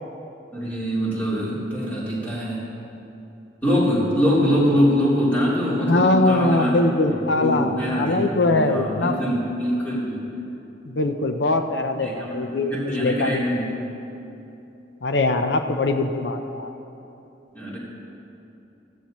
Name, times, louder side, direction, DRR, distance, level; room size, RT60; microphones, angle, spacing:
voice 1, 0.5-2.6 3.6-6.8 7.3-10.2 12.0-13.7 17.5-17.8, equal, 10° left, -9 dB, 3.5 m, -23 dB
voice 2, 5.8-9.2 10.9-13.4 15.0-16.7, left 2 dB, 70° left, 6 dB, 0.6 m, -22 dB
17.5 x 13.5 x 3.1 m, 2.9 s
head